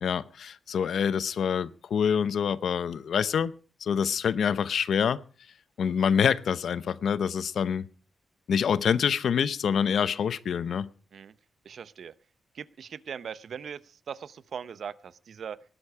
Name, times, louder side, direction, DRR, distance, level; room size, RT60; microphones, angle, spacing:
voice 1, 0.0-3.5 3.8-5.2 5.8-7.9 8.5-10.9, left 7 dB, 75° left, 0.7 m, -26 dB
voice 2, 11.6-12.1 12.5-15.6, right 7 dB, 65° right, 0.7 m, -40 dB
19.0 x 11.5 x 4.8 m
wide cardioid pair, 135°, 0 cm